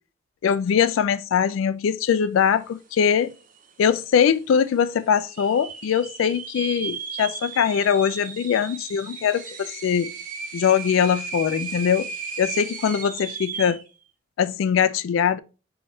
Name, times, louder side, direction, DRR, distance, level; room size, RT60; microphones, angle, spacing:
voice 1, 0.4-3.3 3.8-10.1 10.5-12.1 12.4-13.8 14.4-15.4, left 7 dB, 90° left, 0.3 m, -22 dB
sound 1, 3.0-3.1 3.3-3.8 4.3-4.4 5.2-13.9, right 5 dB, 45° right, 0.6 m, -35 dB
3.9 x 3.9 x 3.2 m
head